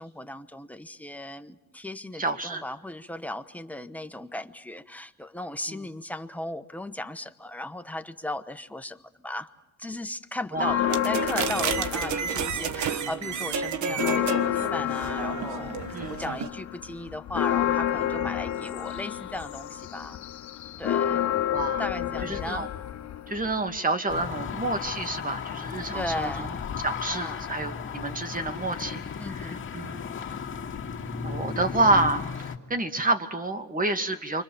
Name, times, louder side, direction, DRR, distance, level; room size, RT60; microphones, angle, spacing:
voice 1, 0.0-9.5 9.8-20.3 20.8-21.3 21.8-22.7 25.9-26.6 27.1-27.5 29.2-29.6, left 1 dB, 5° left, 8 dB, 1.2 m, -36 dB
voice 2, 2.2-2.6 5.7-5.8 10.5-10.9 15.9-16.2 21.5-21.9 22.2-22.7 23.3-26.5 26.8-30.0 31.2-34.4, right 2 dB, 25° right, 8 dB, 2.2 m, -28 dB
sound 1, 10.5-12.9 13.3-23.8, left 11 dB, 75° left, 2.3 m, -30 dB
sound 2, 10.9-16.5, right 6 dB, 70° right, 1.5 m, -31 dB
sound 3, 24.1-32.6, left 6 dB, 40° left, 2.4 m, -35 dB
29.0 x 25.0 x 7.2 m, 0.89 s
cardioid pair, 90°, 30 cm